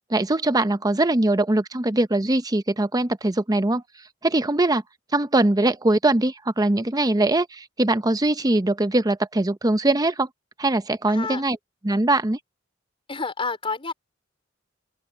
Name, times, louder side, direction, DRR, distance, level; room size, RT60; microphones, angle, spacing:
voice 1, 0.1-3.8 4.2-4.8 5.1-10.3 10.6-11.6 11.8-12.4, right 2 dB, 20° right, 0.8 m, -21 dB
voice 2, 11.1-11.4 13.1-13.9, left 4 dB, 30° left, 4.1 m, -29 dB
open air
head